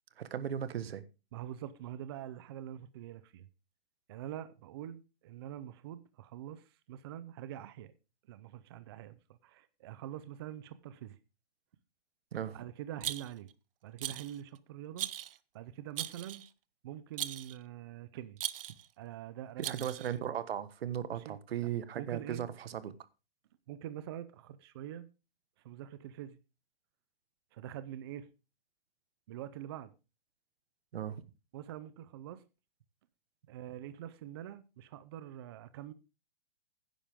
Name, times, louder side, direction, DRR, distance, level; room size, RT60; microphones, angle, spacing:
voice 1, 0.2-1.0 12.3-12.6 19.6-22.9 30.9-31.2, right 9 dB, 85° right, 1.4 m, -37 dB
voice 2, 1.3-3.5 4.1-7.9 8.3-11.2 12.5-13.5 13.8-15.1 15.5-16.5 16.8-18.4 19.0-20.3 21.1-21.7 21.9-22.5 23.7-25.1 25.6-26.4 27.5-28.3 29.3-29.9 31.5-32.4 33.5-35.9, right 11 dB, 25° right, 0.5 m, -45 dB
Rattle, 13.0-13.5 14.0-14.4 15.0-15.4 16.0-16.5 17.2-17.6 18.4-18.9 19.6-20.1, right 11 dB, 70° right, 0.8 m, -39 dB
12.5 x 10.0 x 3.6 m
hypercardioid pair, 170°, 29 cm